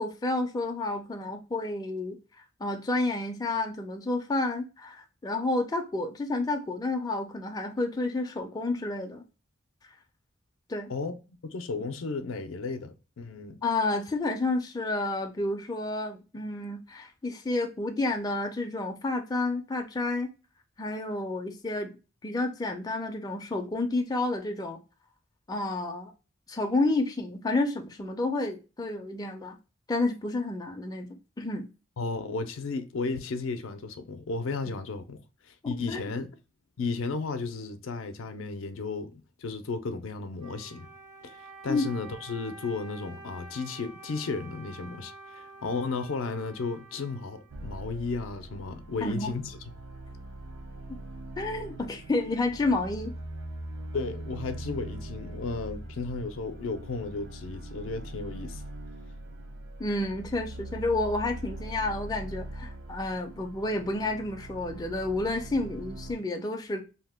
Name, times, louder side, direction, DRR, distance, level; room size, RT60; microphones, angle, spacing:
voice 1, 0.0-2.2 2.6-9.2 10.7-10.9 13.6-20.3 20.8-22.0 22.2-24.8 25.5-26.1 26.5-29.6 29.9-31.1 31.4-31.7 35.6-36.0 41.7-41.8 49.0-49.3 51.4-53.1 59.8-66.8, left 2 dB, 20° left, 0.4 m, -30 dB
voice 2, 11.4-13.6 32.0-35.2 35.5-36.3 36.8-40.9 41.2-49.6 53.9-58.6, left 4 dB, 80° left, 0.5 m, -34 dB
Wind instrument woodwind instrument, 40.4-47.9, right 3 dB, 40° right, 0.6 m, -48 dB
sound 1, 47.5-66.2, right 1 dB, 80° right, 0.6 m, -41 dB
2.8 x 2.1 x 3.3 m
head